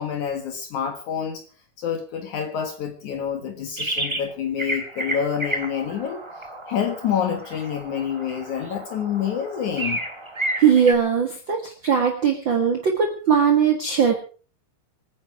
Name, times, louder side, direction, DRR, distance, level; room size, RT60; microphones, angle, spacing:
voice 1, 0.0-1.4 1.8-6.2 6.7-10.0, left 8 dB, 65° left, 6 dB, 3.0 m, -27 dB
sound 1, 3.8-4.3 4.6-10.9, right 1 dB, 15° right, 1.3 m, -31 dB
voice 2, 10.6-14.1, right 7 dB, 40° right, 4 dB, 2.1 m, -19 dB
25.0 x 10.0 x 4.6 m, 0.39 s
omnidirectional pair, 3.7 m